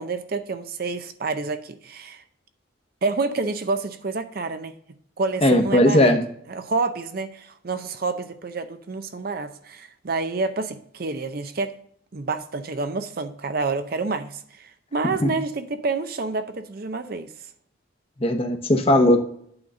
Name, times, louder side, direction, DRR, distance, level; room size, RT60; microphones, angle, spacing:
voice 1, 0.0-2.2 3.0-4.7 5.2-6.1 6.5-11.7 12.1-17.3, right 3 dB, 50° right, 9 dB, 0.5 m, -28 dB
voice 2, 5.4-6.2 15.0-15.3 18.2-19.2, left 1 dB, 30° left, 6 dB, 0.9 m, -18 dB
8.8 x 4.0 x 6.1 m, 0.66 s
head